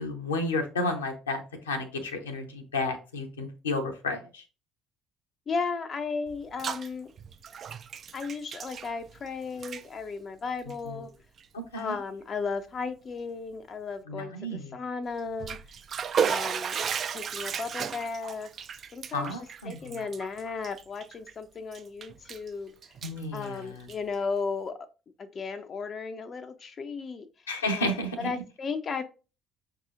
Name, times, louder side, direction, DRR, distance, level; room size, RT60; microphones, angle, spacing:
voice 1, 0.0-4.4 11.7-11.9 14.1-14.8 19.1-19.9 23.0-23.7 27.5-28.3, left 2 dB, 80° left, 0.7 m, -32 dB
voice 2, 5.5-7.1 8.1-11.1 11.7-15.6 16.2-16.9 17.1-18.5 18.9-22.9 23.3-24.9 25.2-29.0, left 4 dB, 40° left, 0.4 m, -35 dB
Bathtub (filling or washing), 6.3-6.9 7.2-9.3 9.5-9.8 10.6-10.7 11.4-11.5 11.9-12.0 15.2-21.3 21.7-22.5 22.8-24.1, right 7 dB, 45° right, 0.3 m, -34 dB
5.9 x 2.8 x 2.5 m
figure-of-eight pair, 50°, 0 cm